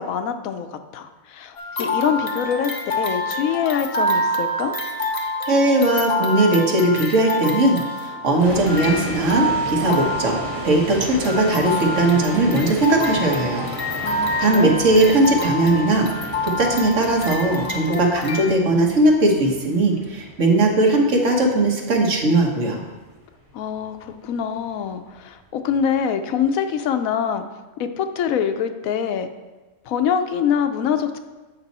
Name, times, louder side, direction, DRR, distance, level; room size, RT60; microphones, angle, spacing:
voice 1, 0.0-4.8 14.0-14.8 23.5-27.4 27.8-29.3 29.9-31.2, left 7 dB, 90° left, 8 dB, 1.0 m, -24 dB
sound 1, 1.6-18.5, left 1 dB, 35° left, 0.6 m, -27 dB
voice 2, 5.4-10.4 10.6-13.7 14.0-22.8, right 2 dB, 65° right, 1 dB, 1.5 m, -19 dB
sound 2, 8.4-25.4, right 1 dB, 90° right, 1.9 m, -34 dB
8.1 x 6.1 x 4.1 m, 1.2 s
omnidirectional pair, 1.4 m